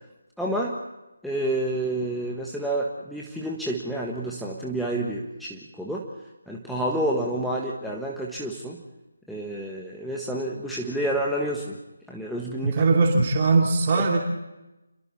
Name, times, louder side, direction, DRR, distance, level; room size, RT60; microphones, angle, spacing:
voice 1, 0.4-0.8 1.2-6.0 6.5-8.8 9.3-11.8 12.1-12.8 14.0-14.2, right 1 dB, ahead, -3 dB, 1.5 m, -29 dB
voice 2, 12.6-14.2, right 3 dB, 35° right, 0 dB, 2.5 m, -20 dB
28.5 x 23.0 x 4.3 m, 1.0 s
figure-of-eight pair, 155°, 0 cm